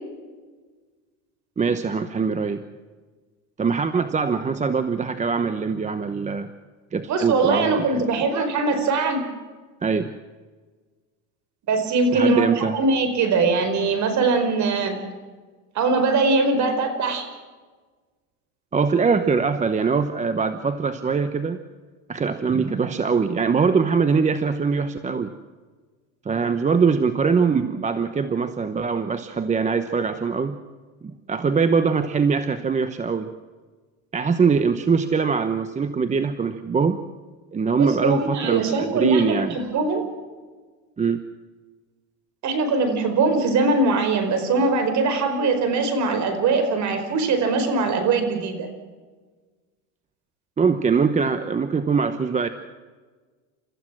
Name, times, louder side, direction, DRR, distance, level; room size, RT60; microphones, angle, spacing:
voice 1, 1.6-2.6 3.6-6.5 6.9-8.0 9.8-10.1 12.1-12.8 18.7-21.6 22.1-25.3 26.2-30.6 31.3-33.3 34.1-37.0 37.5-39.6 41.0-41.2 50.6-52.5, right 5 dB, 20° right, 10 dB, 1.0 m, -22 dB
voice 2, 7.1-9.2 11.7-15.0 15.7-17.3 37.8-40.0 42.4-48.7, right 3 dB, 45° right, 8 dB, 4.8 m, -21 dB
29.5 x 14.5 x 6.2 m, 1.4 s
supercardioid pair, 120°, 40 cm